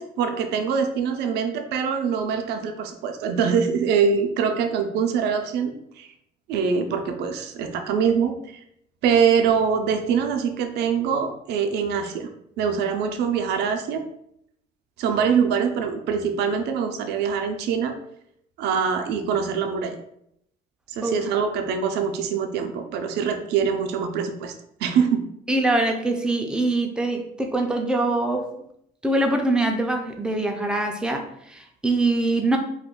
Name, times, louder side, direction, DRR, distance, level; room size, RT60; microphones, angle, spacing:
voice 1, 0.0-6.1 6.5-8.6 9.0-12.3 12.6-14.0 15.0-17.9 18.6-20.0 20.9-24.5 24.8-25.3, right 6 dB, 80° right, 5 dB, 0.4 m, -24 dB
voice 2, 25.5-28.5 29.0-32.6, right 2 dB, 5° right, 3 dB, 0.4 m, -23 dB
2.4 x 2.2 x 3.6 m, 0.75 s
cardioid pair, 110°, 17 cm